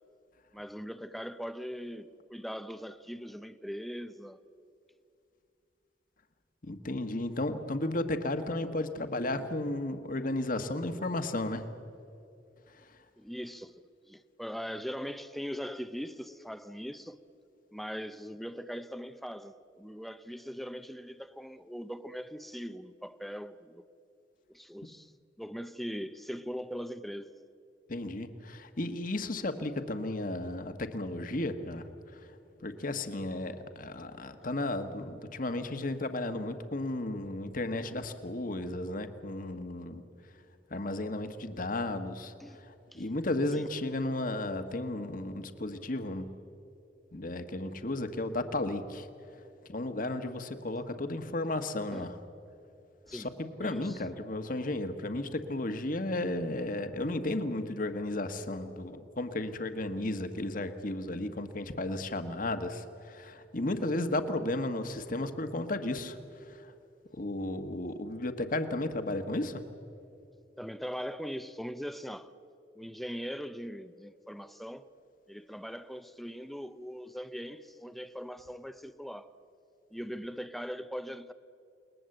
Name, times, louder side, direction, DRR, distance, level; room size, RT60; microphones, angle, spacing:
voice 1, 0.5-4.4 13.2-17.2 17.7-23.8 24.5-25.1 25.4-27.3 42.4-43.0 43.5-43.7 51.9-52.1 53.1-53.3 53.6-54.0 70.6-72.4 72.8-74.9 75.3-79.4 79.9-81.3, equal, ahead, 0.6 m, -41 dB
voice 2, 6.6-11.6 12.7-13.0 27.9-32.3 32.6-40.0 40.7-46.3 47.1-49.1 49.3-49.4 49.7-52.1 53.1-66.7 67.1-69.6, left 2 dB, 50° left, 1.5 m, -34 dB
29.0 x 20.0 x 7.9 m
head